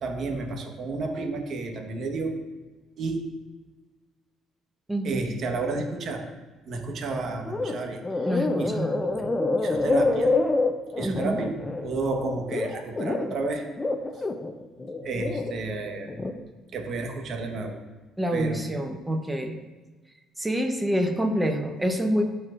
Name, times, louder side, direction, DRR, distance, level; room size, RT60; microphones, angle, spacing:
voice 1, 0.0-2.3 3.0-3.2 5.0-6.2 6.7-8.3 8.6-8.7 9.0-9.3 9.6-10.3 11.0-11.5 11.8-13.6 15.0-16.1 16.7-17.7 18.3-18.7, right 3 dB, 55° right, 2 dB, 1.3 m, -31 dB
voice 2, 4.9-5.3 8.2-9.1 11.0-11.4 18.2-19.6 20.4-22.2, equal, 10° right, 4 dB, 0.9 m, -27 dB
sound 1, 7.5-7.8 8.0-13.4 13.8-15.5 15.9-16.3, left 2 dB, 20° left, 0.6 m, -26 dB
12.5 x 4.5 x 2.6 m, 1.3 s
cardioid pair, 95°, 0 cm